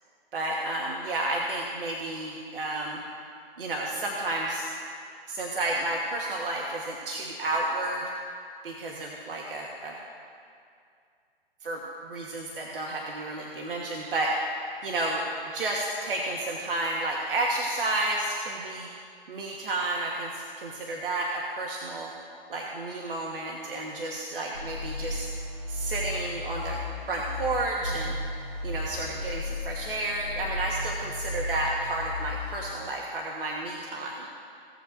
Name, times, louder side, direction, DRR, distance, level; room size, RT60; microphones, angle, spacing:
voice 1, 0.3-3.0 3.6-4.7 5.3-8.1 8.6-9.9 11.6-14.3 14.8-15.2 15.5-18.9 19.3-22.1 22.5-25.3 25.7-26.8 27.1-28.2 28.6-34.3, right 2 dB, 65° right, -2 dB, 1.4 m, -31 dB
sound 1, 24.5-32.6, left 1 dB, 85° right, 2.1 m, -34 dB
17.5 x 7.6 x 2.6 m, 2.3 s
hypercardioid pair, 155°, 30 cm